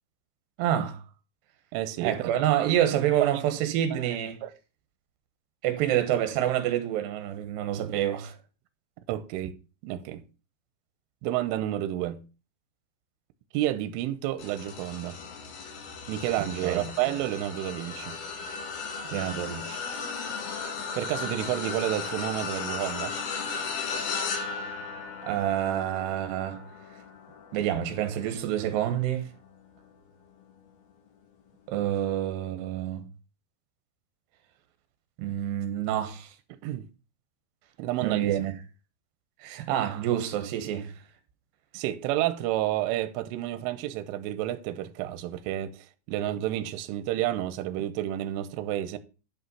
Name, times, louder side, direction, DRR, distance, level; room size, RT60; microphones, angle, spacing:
voice 1, 0.6-1.0 2.0-4.4 5.6-8.4 16.4-16.9 19.1-19.8 25.2-26.6 27.5-29.3 31.7-33.0 35.2-36.3 38.0-38.5 39.4-40.9, right 11 dB, 65° right, 3.1 m, -27 dB
voice 2, 1.7-2.3 3.2-3.3 4.4-4.5 9.1-9.6 9.8-10.3 11.2-12.2 13.5-15.2 16.1-18.2 21.0-23.1 36.6-36.9 37.8-38.3 41.7-49.0, right 13 dB, 85° right, 3.2 m, -30 dB
sound 1, 14.4-29.9 30.4-30.7 31.9-32.0, left 5 dB, 60° left, 3.3 m, -36 dB
11.5 x 5.6 x 5.6 m
omnidirectional pair, 5.9 m